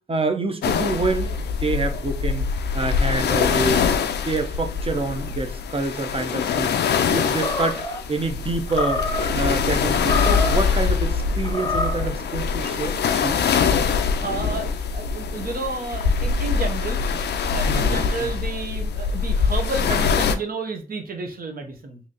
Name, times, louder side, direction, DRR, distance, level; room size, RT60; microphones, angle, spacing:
voice 1, 0.1-2.4 2.7-3.9 4.3-6.8 7.1-9.0 9.3-13.4 17.7-18.3, right 3 dB, 35° right, 0.8 m, -27 dB
sound 1, 0.6-20.3, left 6 dB, 80° left, 0.4 m, -23 dB
Animal, 7.3-8.0 8.7-9.3 9.9-10.7 11.4-12.1, left 2 dB, 25° left, 0.6 m, -27 dB
voice 2, 14.2-17.0 17.5-22.0, right 3 dB, 60° right, 0.9 m, -31 dB
3.1 x 2.7 x 3.8 m
cardioid pair, 50°, 17 cm